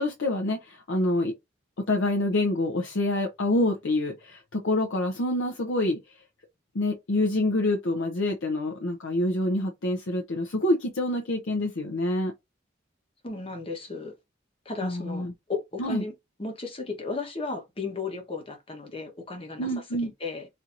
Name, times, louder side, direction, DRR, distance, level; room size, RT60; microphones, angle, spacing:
voice 1, 0.0-1.3 1.8-6.0 6.7-12.3 14.8-15.3 15.8-16.0 19.6-20.1, left 1 dB, 80° left, 0.7 m, -26 dB
voice 2, 13.2-14.2 14.6-16.1 16.4-20.5, left 4 dB, 30° left, 1.0 m, -35 dB
4.3 x 2.7 x 2.6 m
head